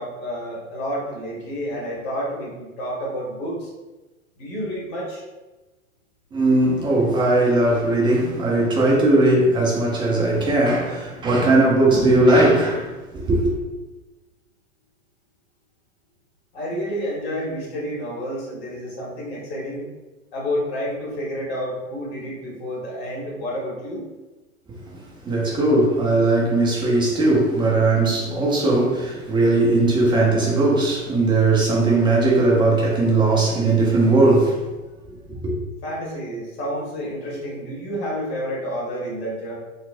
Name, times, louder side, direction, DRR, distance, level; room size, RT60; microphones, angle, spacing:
voice 1, 0.0-3.7 4.4-5.2 16.5-19.8 20.3-24.0 35.8-39.6, equal, 50° left, -4 dB, 1.4 m, -29 dB
voice 2, 6.3-12.9 13.1-13.5 25.3-34.5 35.4-35.5, right 2 dB, 10° right, -3 dB, 0.5 m, -18 dB
4.0 x 2.0 x 2.5 m, 1.1 s
figure-of-eight pair, 95°, 41 cm